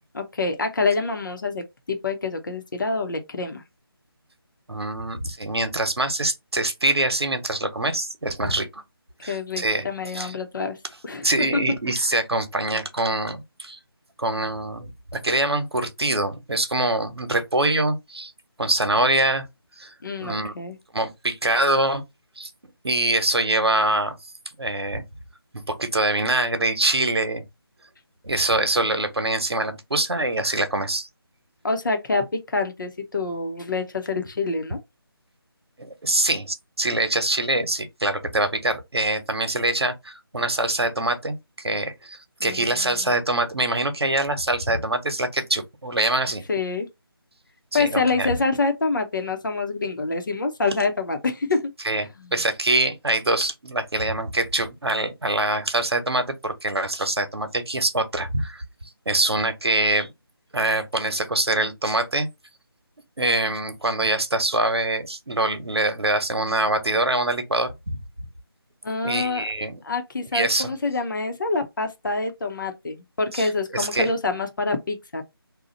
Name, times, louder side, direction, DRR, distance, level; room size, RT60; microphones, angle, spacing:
voice 1, 0.1-3.6 8.4-8.5 9.3-10.8 11.0-11.6 20.0-20.8 31.6-34.8 42.4-43.1 46.5-46.9 47.7-51.7 52.2-52.3 68.8-69.4 69.8-75.2, left 3 dB, 55° left, 0.8 m, -26 dB
voice 2, 4.7-8.8 9.2-10.3 11.2-13.8 14.2-18.3 18.6-19.5 19.8-19.9 20.2-20.5 20.9-22.0 22.4-22.5 22.8-24.2 24.6-25.0 25.7-27.4 28.2-31.1 35.8-46.4 47.7-48.3 51.8-58.6 59.1-60.1 60.5-62.3 63.2-68.0 69.0-69.8 70.3-70.7 73.3-74.1, right 2 dB, 85° right, 1.0 m, -24 dB
2.9 x 2.3 x 3.9 m
figure-of-eight pair, 160°, 13 cm